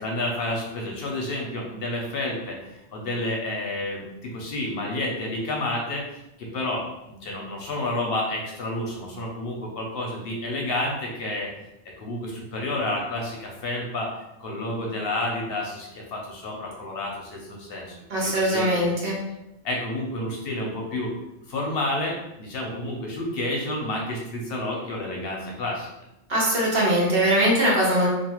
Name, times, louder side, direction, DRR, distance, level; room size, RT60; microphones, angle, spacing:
voice 1, 0.0-11.5 12.0-14.1 14.4-18.0 18.2-18.8 19.6-21.1 21.5-25.9, left 1 dB, 65° left, -1 dB, 0.7 m, -30 dB
voice 2, 18.1-19.1 26.3-28.1, right 1 dB, 60° right, -5 dB, 1.1 m, -21 dB
2.5 x 2.3 x 2.9 m, 0.89 s
omnidirectional pair, 1.2 m